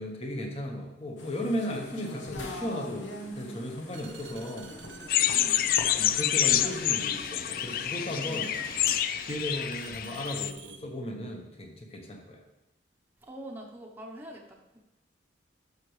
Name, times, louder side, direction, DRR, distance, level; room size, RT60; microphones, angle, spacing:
voice 1, 0.0-3.1 3.4-4.7 6.0-8.5 9.2-12.4, left 1 dB, 30° left, 2 dB, 1.2 m, -35 dB
sound 1, 1.2-9.0, left 1 dB, 85° left, 1.1 m, -43 dB
voice 2, 1.9-2.2 3.9-4.5 5.3-5.7 6.5-7.1 8.2-8.5 13.2-14.8, equal, 10° right, -1 dB, 0.9 m, -45 dB
sound 2, 3.9-10.8, right 7 dB, 75° right, 0.6 m, -49 dB
sound 3, 5.1-10.5, left 12 dB, 50° left, 0.3 m, -27 dB
12.0 x 6.4 x 3.2 m, 0.97 s
head